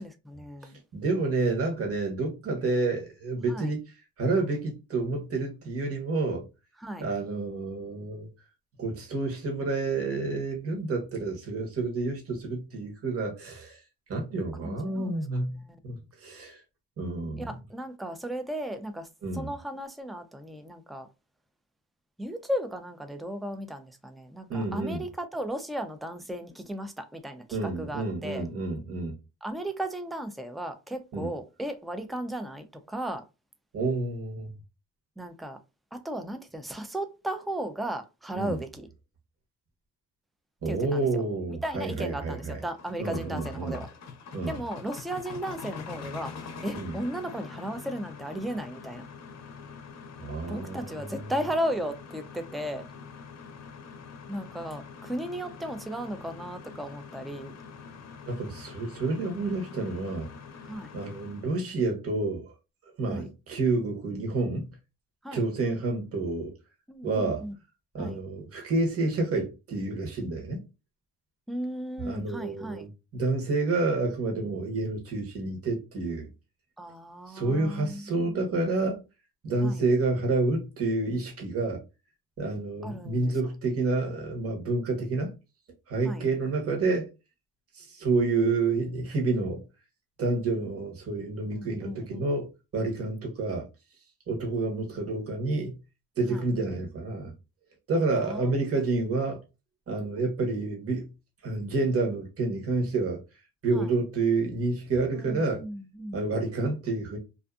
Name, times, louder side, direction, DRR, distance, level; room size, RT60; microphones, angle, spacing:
voice 1, 0.0-0.8 3.5-3.7 6.8-7.1 14.6-15.2 15.7-15.8 17.4-19.1 19.3-21.1 22.2-28.4 29.4-33.2 35.2-35.6 35.9-38.9 40.7-41.0 41.6-43.9 44.5-46.3 46.6-49.0 50.5-52.9 54.3-57.5 60.7-60.9 63.1-63.3 65.2-65.4 66.9-67.5 68.0-68.2 71.5-72.9 76.8-78.4 79.6-79.8 82.8-83.3 86.0-86.2 91.6-92.3 96.3-96.5 98.2-98.5 103.7-103.9 105.2-106.2, right 1 dB, ahead, 0.4 m, -35 dB
voice 2, 0.9-3.8 4.2-6.5 7.0-8.3 8.8-13.8 14.1-16.6 17.0-17.6 19.2-19.5 24.5-25.0 27.5-29.2 31.1-31.3 33.7-34.5 38.3-38.6 40.6-42.6 43.0-43.8 44.3-44.6 46.7-46.9 50.2-51.3 58.3-60.3 60.9-62.5 63.0-64.7 65.3-66.5 67.0-67.4 67.9-70.6 72.0-76.3 77.3-79.0 79.4-81.8 82.4-85.3 85.9-87.1 87.7-89.6 90.2-93.7 94.3-95.7 96.2-97.3 97.9-99.4 99.9-101.1 101.4-103.2 103.6-105.6 106.1-107.2, right 3 dB, 50° right, 1.1 m, -29 dB
sound 1, 42.2-61.6, left 5 dB, 60° left, 0.6 m, -45 dB
2.5 x 2.4 x 2.3 m
cardioid pair, 90°, 30 cm